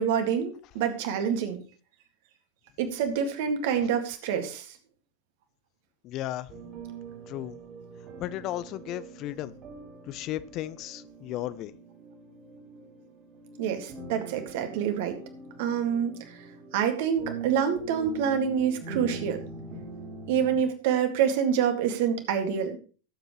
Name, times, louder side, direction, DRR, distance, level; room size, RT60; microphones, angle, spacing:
voice 1, 0.0-1.6 2.8-4.7 13.6-15.2 15.6-16.4 16.7-19.4 20.3-22.8, right 8 dB, 50° right, 7 dB, 2.0 m, -27 dB
voice 2, 6.0-6.5 7.3-7.6 8.2-9.5 10.1-11.7, left 14 dB, 35° left, 16 dB, 0.5 m, -35 dB
sound 1, 6.5-20.6, right 4 dB, 35° right, 3.2 m, -43 dB
17.5 x 7.9 x 3.2 m, 0.38 s
figure-of-eight pair, 90°, 0 cm